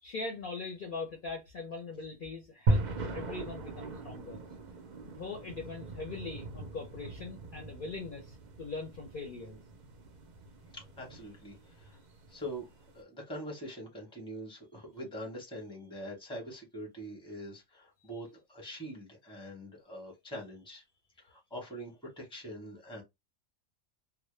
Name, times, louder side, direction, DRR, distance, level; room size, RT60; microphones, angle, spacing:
voice 1, 0.0-2.9 3.1-4.4 5.0-9.6, left 3 dB, 55° left, 0.6 m, -41 dB
sound 1, 2.7-12.9, right 2 dB, 60° right, 0.5 m, -38 dB
voice 2, 10.7-12.0 12.3-12.7 12.9-20.8 21.2-23.0, equal, 5° left, 0.8 m, -44 dB
2.1 x 2.1 x 3.0 m
omnidirectional pair, 1.3 m